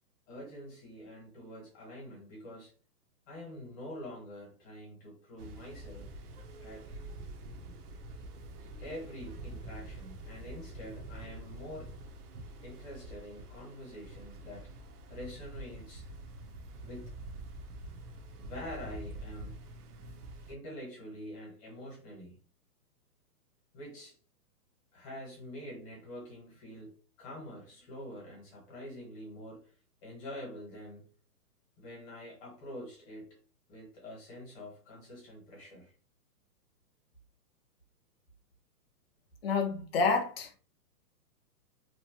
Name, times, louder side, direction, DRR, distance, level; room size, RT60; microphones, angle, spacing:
voice 1, 0.3-2.7 3.3-6.1 6.6-6.9 8.8-11.9 12.6-14.7 15.1-16.1 16.8-17.1 18.4-19.6 20.5-22.4 23.7-24.2 24.9-29.7 30.0-31.0 31.8-33.4 33.7-35.9, equal, 20° left, 1.1 m, -46 dB
sound 1, 5.4-20.6, right 1 dB, 70° right, 0.8 m, -46 dB
voice 2, 39.4-40.5, left 4 dB, 40° left, 0.5 m, -28 dB
3.0 x 2.1 x 2.9 m
hypercardioid pair, 160°, 48 cm